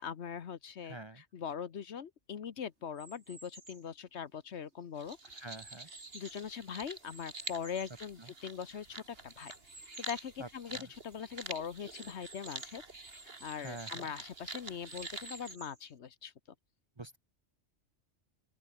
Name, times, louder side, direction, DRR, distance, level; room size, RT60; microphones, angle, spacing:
voice 1, 0.0-1.0 1.3-5.4 6.1-9.5 10.1-10.8 11.0-12.8 13.4-16.3, left 7 dB, 70° left, 1.3 m, -41 dB
voice 2, 0.8-1.2 5.2-5.9 8.2-8.3 10.4-10.9 13.5-14.1 17.0-17.2, right 2 dB, 25° right, 0.8 m, -47 dB
sound 1, 3.0-3.9 4.5-6.6 7.0-8.7 9.4-10.3 10.8-10.9 11.1-11.2 11.9-14.0 14.6-15.9, right 2 dB, 75° right, 5.5 m, -54 dB
sound 2, 5.0-15.6, right 3 dB, 55° right, 2.7 m, -47 dB
open air
omnidirectional pair, 1.2 m